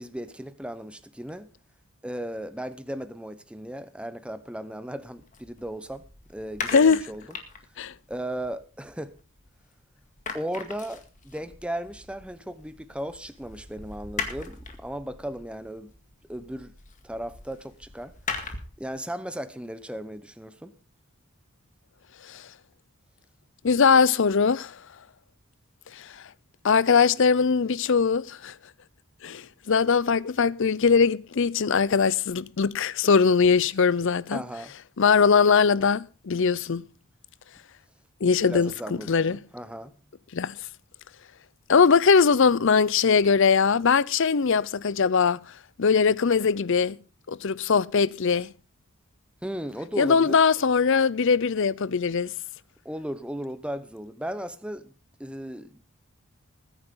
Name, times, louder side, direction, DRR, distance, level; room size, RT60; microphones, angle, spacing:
voice 1, 0.0-1.5 2.0-6.0 6.3-7.2 8.1-9.1 10.3-15.9 16.3-16.7 17.0-18.1 18.8-20.7 34.3-34.7 38.4-39.9 49.4-50.4 52.8-54.9 55.2-55.8, right 1 dB, 5° right, 0.9 m, -36 dB
sound 1, 5.1-9.7 10.0-18.9, left 4 dB, 35° left, 2.0 m, -40 dB
voice 2, 23.6-24.7 26.0-26.1 26.6-28.5 29.2-34.4 35.0-36.9 38.2-39.4 40.3-40.6 41.7-45.4 45.8-47.0 47.3-48.5 50.0-52.3, left 5 dB, 60° left, 0.6 m, -21 dB
20.5 x 9.8 x 3.8 m
head